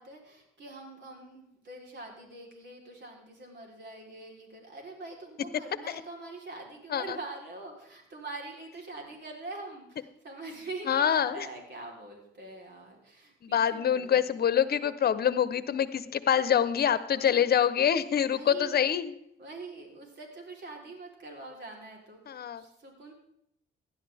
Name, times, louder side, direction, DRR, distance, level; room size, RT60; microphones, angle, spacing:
voice 1, 0.0-14.3 16.9-17.6 18.3-18.8 19.4-23.1, right 2 dB, 60° right, 1 dB, 4.0 m, -44 dB
voice 2, 10.9-11.5 13.5-19.1 22.3-22.6, left 9 dB, 50° left, 14 dB, 1.0 m, -25 dB
17.0 x 11.0 x 3.6 m, 0.79 s
cardioid pair, 90°, 20 cm